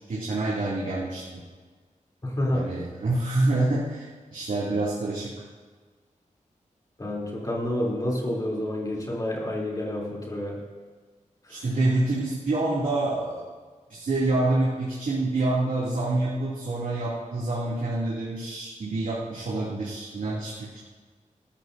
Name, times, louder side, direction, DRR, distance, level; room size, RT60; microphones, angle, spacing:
voice 1, 0.1-1.4 2.5-5.3 11.5-13.4 13.9-20.8, right 2 dB, 80° right, -8 dB, 2.7 m, -27 dB
voice 2, 2.2-2.7 7.0-10.6 11.5-11.6, left 1 dB, 25° left, -3 dB, 3.4 m, -29 dB
19.0 x 13.5 x 2.7 m, 1.4 s
wide cardioid pair, 145°, 14 cm